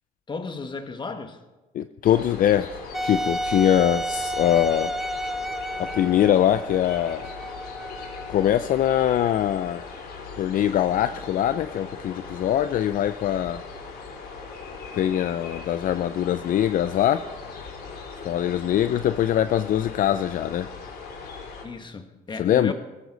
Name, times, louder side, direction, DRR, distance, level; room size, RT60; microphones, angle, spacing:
voice 1, 0.3-1.4 21.6-22.7, left 4 dB, 25° left, 7 dB, 1.4 m, -34 dB
voice 2, 1.7-2.7 3.0-4.9 5.8-7.3 8.3-9.8 10.4-13.6 14.9-17.3 18.2-20.7 22.4-22.7, left 11 dB, 55° left, 11 dB, 0.5 m, -22 dB
sound 1, 2.0-21.7, left 4 dB, 75° left, 3.6 m, -39 dB
Wind instrument woodwind instrument, 2.9-8.6, right 1 dB, ahead, 0.7 m, -31 dB
20.5 x 14.5 x 4.0 m, 1.1 s
cardioid pair, 110°, 17 cm